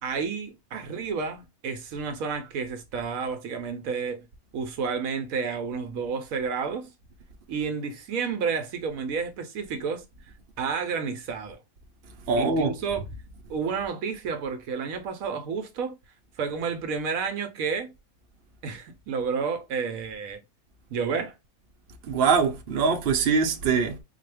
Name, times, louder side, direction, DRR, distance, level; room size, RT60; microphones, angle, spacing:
voice 1, 0.0-4.3 4.5-6.9 7.5-10.1 10.6-11.6 12.4-13.1 13.5-15.9 16.4-17.9 18.6-20.4 20.9-21.3, right 5 dB, 70° right, 1.0 m, -30 dB
voice 2, 12.3-12.7 22.1-24.0, right 5 dB, 50° right, 0.8 m, -23 dB
4.0 x 2.3 x 3.3 m
omnidirectional pair, 1.6 m